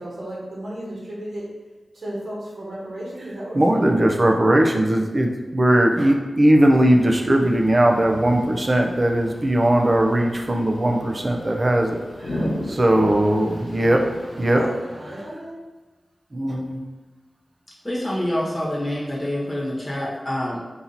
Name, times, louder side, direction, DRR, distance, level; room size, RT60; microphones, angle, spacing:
voice 1, 0.0-1.5 1.9-4.0 14.5-15.6, right 1 dB, 75° right, -6 dB, 1.3 m, -34 dB
voice 2, 3.5-12.0 12.3-14.6 16.3-16.8, right 1 dB, 35° right, 3 dB, 0.5 m, -19 dB
sound 1, 6.7-14.6, equal, 90° left, 1.0 m, -35 dB
voice 3, 17.8-20.6, left 1 dB, 15° left, -6 dB, 1.2 m, -26 dB
4.3 x 2.7 x 4.0 m, 1.2 s
wide cardioid pair, 105°, 0 cm